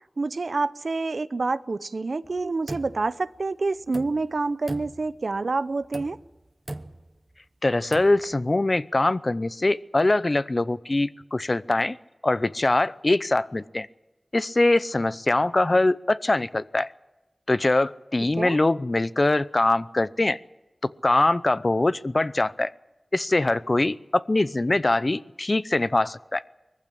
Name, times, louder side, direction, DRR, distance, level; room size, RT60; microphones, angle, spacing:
voice 1, 0.2-6.2 18.4-18.6, right 3 dB, 75° right, 15 dB, 0.7 m, -27 dB
sound 1, 2.2-3.4 3.8-4.4 4.7-5.4 5.8-6.4 6.7-7.2 7.8-8.3, right 1 dB, 35° right, 1.0 m, -39 dB
voice 2, 7.6-12.0 12.2-13.9 14.3-16.9 17.5-20.4 20.8-22.7 23.1-26.4, left 2 dB, 45° left, 16 dB, 0.7 m, -23 dB
20.5 x 15.0 x 10.0 m, 1.0 s
cardioid pair, 40°, 0 cm